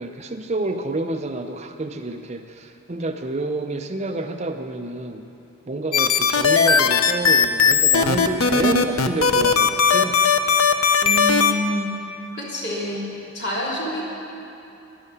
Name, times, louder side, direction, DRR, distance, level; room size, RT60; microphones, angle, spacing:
voice 1, 0.0-5.2 5.7-10.2, right 2 dB, 30° right, 6 dB, 0.5 m, -28 dB
sound 1, 5.9-11.5, left 6 dB, 85° left, 0.7 m, -17 dB
voice 2, 11.0-11.9 12.3-13.1 13.3-14.0, left 1 dB, 50° left, -5 dB, 3.2 m, -27 dB
12.0 x 11.0 x 8.4 m, 2.8 s
head